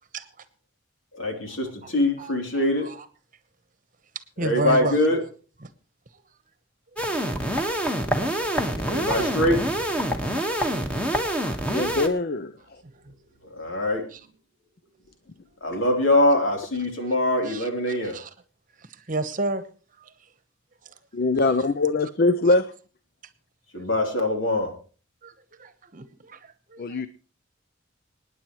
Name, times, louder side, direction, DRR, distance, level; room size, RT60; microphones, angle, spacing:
voice 1, 1.1-2.9 4.4-5.2 8.8-9.6 13.5-14.0 15.6-18.2 23.7-24.7, left 1 dB, 75° left, 2 dB, 3.5 m, -23 dB
voice 2, 4.4-5.0 17.0-17.1 17.5-17.7 18.1-18.3 19.1-19.6 21.4-21.5 22.5-22.6 25.2-25.3 25.6-27.1, right 2 dB, 40° right, 13 dB, 1.0 m, -30 dB
sound 1, 7.0-12.1, equal, 5° left, 1.5 m, -26 dB
voice 3, 11.7-12.5 15.7-15.8 21.1-22.7 26.8-27.1, left 3 dB, 50° left, 13 dB, 0.6 m, -23 dB
25.5 x 9.8 x 3.1 m, 0.37 s
head